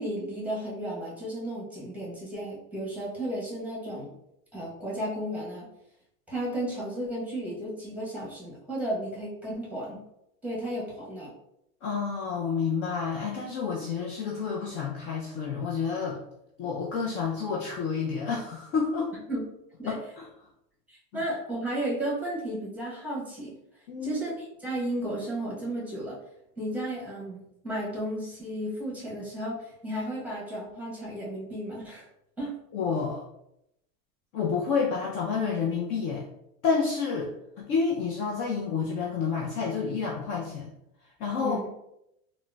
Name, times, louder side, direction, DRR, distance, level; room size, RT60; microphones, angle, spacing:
voice 1, 0.0-4.1 4.5-5.7 6.3-10.0 10.4-11.3 19.3-19.4 19.8-19.9 20.9-23.5 24.0-26.2 26.6-27.4 27.6-32.1 32.4-32.5 41.4-41.7, right 1 dB, 5° right, -6 dB, 0.9 m, -33 dB
voice 2, 11.8-16.2 16.6-19.1 19.9-20.3 21.1-21.2 23.9-24.2 32.7-33.2 34.3-36.3 36.6-37.3 37.6-40.7 41.2-41.6, left 5 dB, 40° left, -2 dB, 0.4 m, -29 dB
3.6 x 2.0 x 2.2 m, 0.82 s
supercardioid pair, 130°, 43 cm